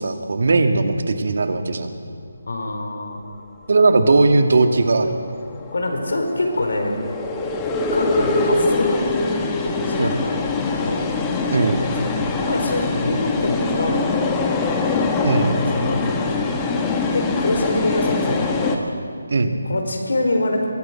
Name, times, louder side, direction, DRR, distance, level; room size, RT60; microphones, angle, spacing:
voice 1, 0.0-1.9 3.7-5.2 8.2-8.3 10.0-10.2 11.5-11.8 15.2-15.6 19.3-19.6, right 3 dB, 60° right, 6 dB, 2.1 m, -18 dB
voice 2, 2.5-3.2 5.7-6.9 7.9-9.3 9.6-11.1 12.0-14.5 15.7-16.3 17.1-18.9 19.6-20.7, left 2 dB, 75° left, 3 dB, 4.9 m, -25 dB
sound 1, 4.7-18.8, left 3 dB, 15° left, 1.5 m, -23 dB
23.0 x 16.5 x 7.7 m, 2.2 s
figure-of-eight pair, 165°, 0 cm